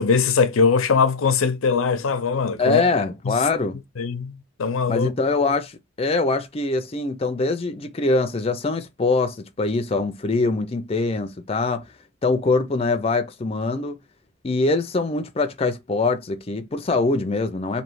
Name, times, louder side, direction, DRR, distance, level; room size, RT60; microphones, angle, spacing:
voice 1, 0.0-2.8 3.2-3.3 4.0-5.1, left 5 dB, 90° left, 0.5 m, -21 dB
voice 2, 2.6-3.8 4.9-11.9 12.2-14.0 14.4-17.8, left 3 dB, 30° left, 0.4 m, -23 dB
3.1 x 2.8 x 4.6 m
head